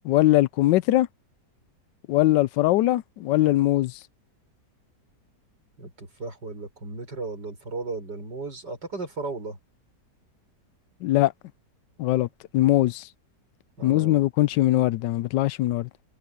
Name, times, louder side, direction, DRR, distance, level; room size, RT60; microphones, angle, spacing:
voice 1, 0.0-1.1 2.1-3.9 11.0-11.3 12.0-12.3 12.5-13.1 13.8-15.9, left 16 dB, 90° left, 1.2 m, -21 dB
voice 2, 5.8-9.6 13.8-14.2, right 3 dB, 80° right, 7.1 m, -35 dB
omnidirectional pair, 1.8 m